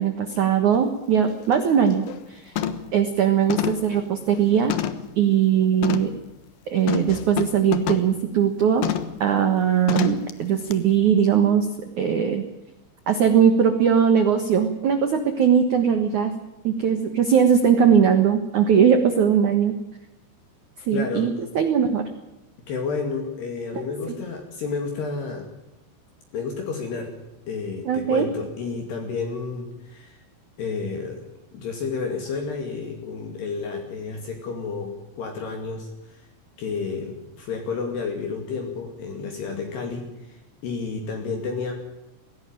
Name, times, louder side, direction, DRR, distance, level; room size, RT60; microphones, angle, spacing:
voice 1, 0.0-2.5 2.9-4.7 5.1-6.1 6.7-8.9 9.2-11.7 12.0-12.4 13.1-16.3 16.6-19.7 20.9-22.0 23.7-23.8 27.8-28.3, right 8 dB, 80° right, 8 dB, 1.7 m, -20 dB
sound 1, 0.7-0.8 1.3-1.5 1.9-2.2 2.6-3.0 3.5-5.2 5.8-6.2 6.9-8.1 8.8-9.2 9.9-10.3 10.7-10.8, left 10 dB, 75° left, 2.0 m, -28 dB
voice 2, 20.9-21.5 22.7-25.5 26.3-27.1 27.5-30.2 30.6-31.2 31.5-36.3 36.6-41.7, left 4 dB, 60° left, 3 dB, 4.1 m, -31 dB
20.5 x 16.5 x 9.0 m, 0.95 s
omnidirectional pair, 5.9 m